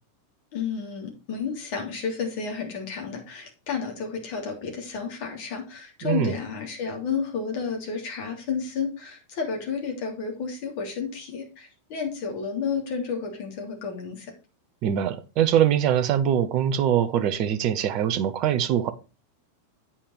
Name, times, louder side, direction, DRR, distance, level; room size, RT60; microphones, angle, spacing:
voice 1, 0.5-14.3, left 6 dB, 45° left, 3.2 m, -31 dB
voice 2, 6.0-6.3 14.8-18.9, right 10 dB, 40° right, 0.9 m, -23 dB
8.7 x 5.7 x 4.7 m
figure-of-eight pair, 90°, 0 cm